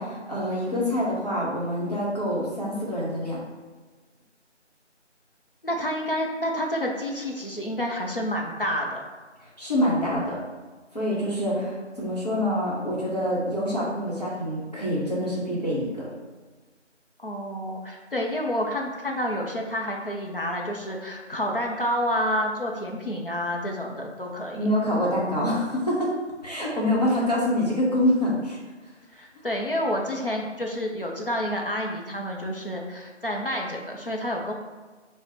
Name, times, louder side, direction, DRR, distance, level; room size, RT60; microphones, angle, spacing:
voice 1, 0.0-3.4 9.4-10.4 10.9-16.1 24.5-26.1 26.4-28.6, left 1 dB, 35° left, -7 dB, 0.9 m, -26 dB
voice 2, 5.6-9.0 17.2-24.6 29.1-34.5, equal, 50° left, 0 dB, 0.5 m, -29 dB
5.0 x 2.0 x 2.9 m, 1.3 s
figure-of-eight pair, 175°, 36 cm